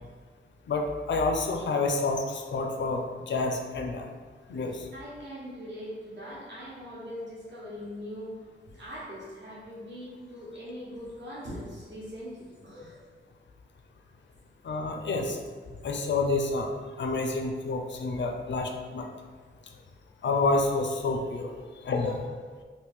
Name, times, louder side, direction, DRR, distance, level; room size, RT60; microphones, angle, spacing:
voice 1, 0.7-4.1 4.5-4.9 14.6-15.4 15.8-16.7 17.0-19.1 20.2-21.5 21.8-22.1, left 3 dB, 65° left, 3 dB, 0.4 m, -28 dB
voice 2, 4.9-13.0 21.5-22.2, equal, 65° right, -7 dB, 1.1 m, -41 dB
3.1 x 2.5 x 3.5 m, 1.5 s
wide cardioid pair, 130°, 20 cm